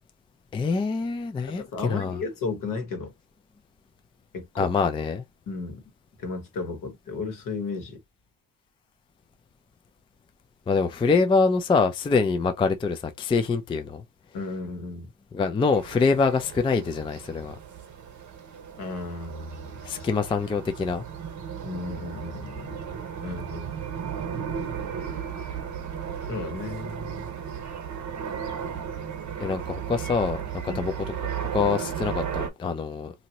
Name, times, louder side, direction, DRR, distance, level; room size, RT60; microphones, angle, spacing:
voice 1, 0.5-2.2 4.6-5.2 10.7-14.0 15.3-17.6 19.8-21.0 29.4-30.9 31.5-33.1, left 4 dB, 15° left, 0.3 m, -25 dB
voice 2, 1.5-3.1 4.3-4.7 5.5-5.8 6.2-8.0 14.3-15.1 18.8-20.1 21.6-23.7 26.3-27.3 30.7-30.9, left 3 dB, 65° left, 1.3 m, -34 dB
sound 1, 15.7-32.5, right 8 dB, 50° right, 0.9 m, -35 dB
2.8 x 2.6 x 2.9 m
cardioid pair, 95°, 36 cm